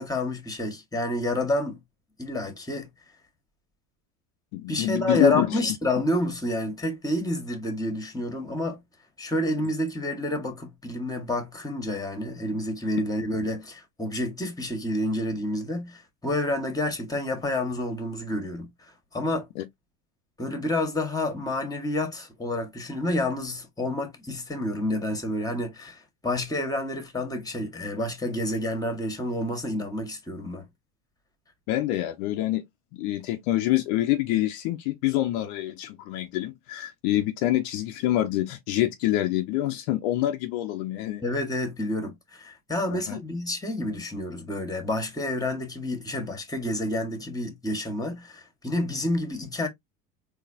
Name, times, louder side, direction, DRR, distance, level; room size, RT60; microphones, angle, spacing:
voice 1, 0.0-1.8 2.2-2.9 4.7-8.8 9.2-18.7 19.1-19.5 20.4-30.6 41.2-49.7, left 1 dB, 10° left, 1.7 m, -29 dB
voice 2, 4.5-5.5 19.6-19.7 31.7-32.6 32.9-41.2 42.9-43.2, left 15 dB, 65° left, 0.8 m, -26 dB
4.0 x 3.0 x 2.7 m
hypercardioid pair, 80°, 42 cm